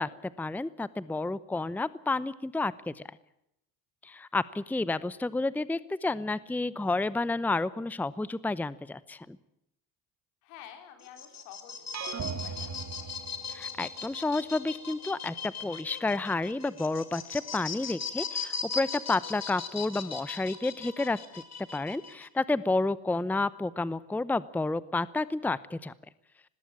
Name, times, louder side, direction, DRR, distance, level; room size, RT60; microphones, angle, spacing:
voice 1, 0.0-3.0 4.0-9.4 13.5-21.2 21.7-25.9, left 3 dB, 5° left, 18 dB, 0.7 m, -30 dB
voice 2, 10.4-13.1, left 9 dB, 80° left, 7 dB, 3.8 m, -50 dB
sound 1, 11.0-22.3, left 6 dB, 40° left, 2.8 m, -39 dB
sound 2, 11.7-21.2, left 5 dB, 60° left, 3.2 m, -57 dB
sound 3, 11.9-13.9, right 6 dB, 40° right, 2.3 m, -38 dB
19.5 x 17.5 x 8.7 m, 0.82 s
supercardioid pair, 70°, 42 cm